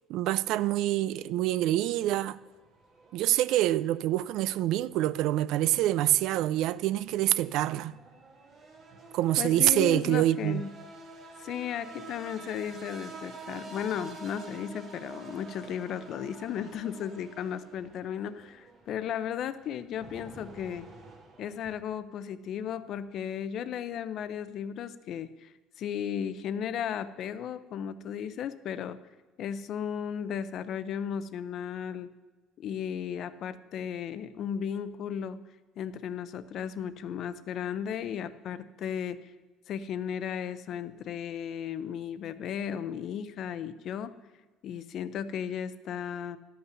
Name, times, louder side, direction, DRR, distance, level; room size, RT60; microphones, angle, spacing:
voice 1, 0.1-2.4 3.1-7.9 9.1-10.6, right 14 dB, 65° right, 0.3 m, -26 dB
sound 1, 1.9-21.7, right 3 dB, 40° right, 1.6 m, -49 dB
voice 2, 9.4-10.8 11.4-20.9 21.4-25.5 25.8-29.0 29.4-32.1 32.6-35.4 35.8-39.3 39.7-44.2 44.6-46.4, left 8 dB, 50° left, 0.6 m, -35 dB
12.5 x 5.7 x 6.9 m
cardioid pair, 140°, 0 cm